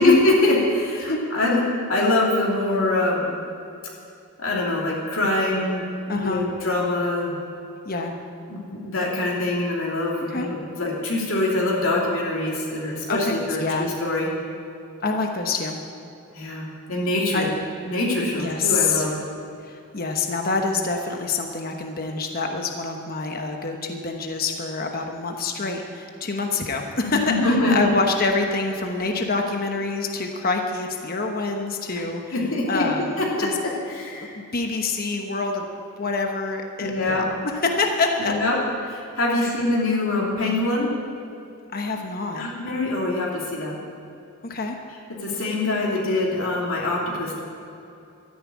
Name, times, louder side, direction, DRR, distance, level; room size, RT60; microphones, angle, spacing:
voice 1, 0.0-3.3 4.4-7.3 8.5-13.6 14.0-14.3 16.3-17.5 17.8-19.1 27.1-27.9 31.9-32.0 32.3-32.8 33.2-33.5 33.9-34.3 36.8-37.3 38.2-38.6 38.8-40.9 42.4-43.8 45.2-47.4, left 2 dB, 65° left, -4 dB, 2.9 m, -24 dB
voice 2, 6.1-6.5 7.8-8.1 10.3-10.5 13.1-13.9 15.0-15.8 17.3-17.5 18.4-19.1 19.6-32.3 32.7-33.6 34.3-35.7 36.0-38.3 39.4-39.5 41.7-42.5 44.4-44.8, left 3 dB, 40° left, 3 dB, 1.1 m, -26 dB
13.5 x 10.0 x 8.5 m, 2.8 s
head